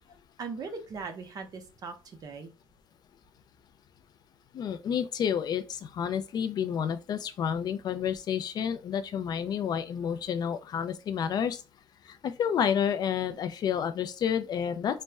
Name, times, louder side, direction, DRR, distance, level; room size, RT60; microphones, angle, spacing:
voice 1, 0.4-2.5, right 4 dB, 45° right, 0.7 m, -39 dB
voice 2, 4.5-11.6 12.1-15.0, left 8 dB, 50° left, 0.4 m, -30 dB
4.1 x 2.1 x 3.4 m
cardioid pair, 150°, 9 cm